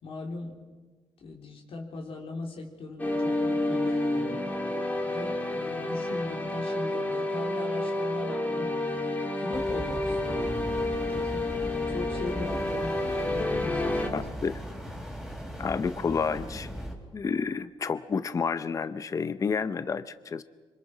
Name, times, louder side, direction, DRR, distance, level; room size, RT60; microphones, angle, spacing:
voice 1, 0.0-0.6 1.2-4.3 5.1-8.8 9.3-14.3, left 3 dB, 60° left, 1 dB, 3.4 m, -39 dB
sound 1, 3.0-14.1, left 1 dB, 15° left, 2.7 m, -29 dB
sound 2, 9.5-16.9, equal, ahead, 4.5 m, -38 dB
voice 2, 14.1-14.5 15.6-16.7 17.1-20.4, left 5 dB, 30° left, 13 dB, 0.7 m, -30 dB
26.0 x 25.5 x 5.0 m, 1.4 s
cardioid pair, 130°, 10 cm